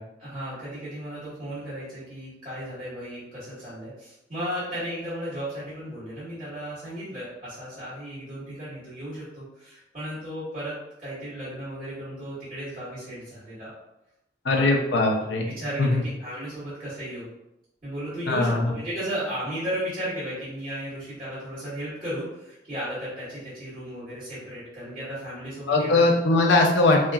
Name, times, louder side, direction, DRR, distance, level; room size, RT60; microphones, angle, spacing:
voice 1, 0.2-13.7 14.5-14.7 15.2-15.3 15.6-17.3 17.8-26.1, equal, 30° right, -14 dB, 1.5 m, -35 dB
voice 2, 14.4-15.5 15.8-16.0 18.3-18.7 25.7-27.0, left 2 dB, 65° left, 1 dB, 0.5 m, -20 dB
2.8 x 2.3 x 2.3 m, 0.88 s
head